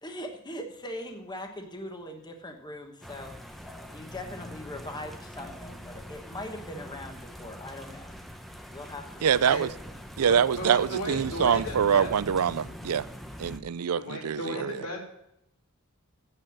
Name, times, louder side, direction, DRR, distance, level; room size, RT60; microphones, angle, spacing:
voice 1, 0.0-8.1 8.7-9.4 14.3-14.7, left 1 dB, 20° left, 1.2 m, -41 dB
sound 1, 3.0-13.6, equal, ahead, 0.8 m, -43 dB
voice 2, 9.2-9.7 10.2-13.1 13.4-14.8, right 7 dB, 90° right, 0.5 m, -25 dB
voice 3, 10.3-12.1 13.9-15.1, left 1 dB, 75° left, 3.2 m, -35 dB
9.0 x 7.6 x 7.3 m
head